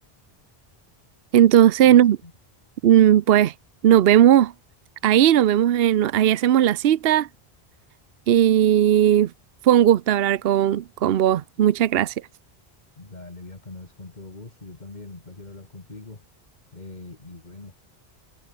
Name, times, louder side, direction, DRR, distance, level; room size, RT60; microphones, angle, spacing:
voice 1, 1.3-2.2 2.8-3.5 3.8-4.5 5.0-7.3 8.3-9.3 9.6-12.1, right 11 dB, 70° right, 0.9 m, -17 dB
voice 2, 13.0-16.2 16.7-17.7, left 3 dB, 45° left, 2.4 m, -42 dB
omnidirectional pair, 1.1 m